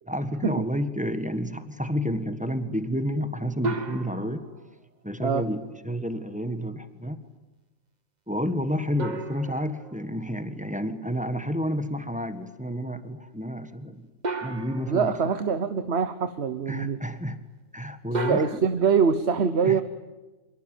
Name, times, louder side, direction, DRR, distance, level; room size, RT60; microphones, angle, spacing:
voice 1, 0.1-4.4 5.0-7.2 8.3-14.1 14.4-15.2 16.7-17.4 17.7-18.6 19.6-19.8, equal, 5° right, 10 dB, 1.6 m, -30 dB
sound 1, 3.6-4.7 9.0-10.5 14.2-15.4 18.1-18.6, right 2 dB, 35° right, 1.2 m, -34 dB
voice 2, 14.9-17.0 18.3-19.8, right 6 dB, 60° right, 11 dB, 1.3 m, -24 dB
26.0 x 23.0 x 9.2 m, 1.1 s
omnidirectional pair, 1.3 m